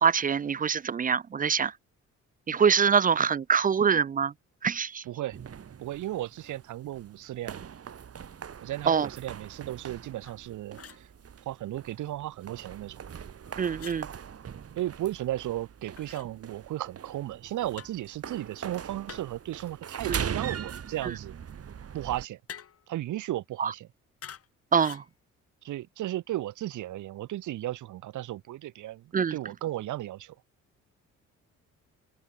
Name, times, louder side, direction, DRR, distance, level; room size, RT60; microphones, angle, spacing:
voice 1, 0.0-1.7 2.5-4.3 4.6-5.0 8.9-9.1 13.6-14.1 23.6-23.7 24.7-25.0 29.1-29.3, right 6 dB, 30° right, 0.4 m, -24 dB
voice 2, 5.0-5.4 5.8-7.6 8.6-11.1 11.4-13.0 14.8-21.3 21.9-22.4 22.9-23.9 25.6-29.0 29.3-30.3, right 14 dB, 80° right, 1.7 m, -35 dB
sound 1, 5.3-22.3, right 8 dB, 50° right, 6.2 m, -41 dB
sound 2, 10.2-10.4 10.7-11.1 13.8-14.0 16.0-16.3 17.8-18.0 19.1-19.5 22.5-22.9 24.2-24.5 24.7-25.1, left 8 dB, 50° left, 2.7 m, -46 dB
open air
cardioid pair, 90°, 30 cm